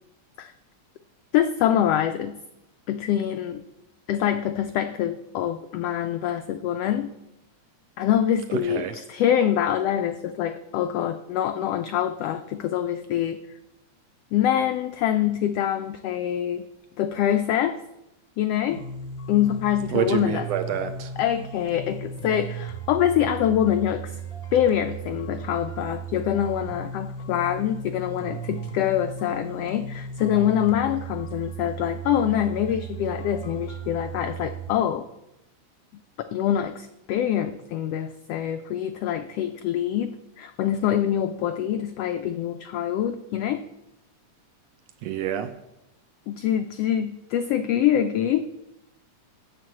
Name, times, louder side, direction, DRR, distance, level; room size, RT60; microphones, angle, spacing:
voice 1, 1.3-2.4 2.9-3.6 4.1-7.1 8.0-13.4 14.3-16.6 17.0-17.8 18.4-18.8 19.3-20.5 21.2-24.2 24.5-35.1 36.2-43.6 46.3-48.5, left 10 dB, 85° left, 8 dB, 1.3 m, -25 dB
voice 2, 8.6-8.9 19.9-21.1 45.0-45.5, right 9 dB, 75° right, 8 dB, 1.6 m, -27 dB
sound 1, 18.7-34.7, right 5 dB, 35° left, 0.9 m, -36 dB
7.8 x 7.5 x 7.3 m, 0.88 s
omnidirectional pair, 3.4 m